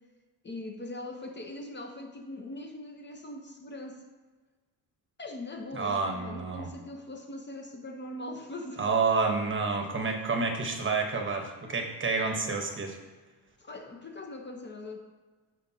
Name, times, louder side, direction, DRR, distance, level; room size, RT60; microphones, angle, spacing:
voice 1, 0.4-4.0 5.2-8.8 13.6-15.0, left 2 dB, 25° left, 3 dB, 0.9 m, -41 dB
voice 2, 5.8-6.7 8.8-13.0, right 4 dB, 30° right, 3 dB, 1.0 m, -29 dB
13.5 x 5.0 x 2.8 m, 1.3 s
cardioid pair, 120°, 42 cm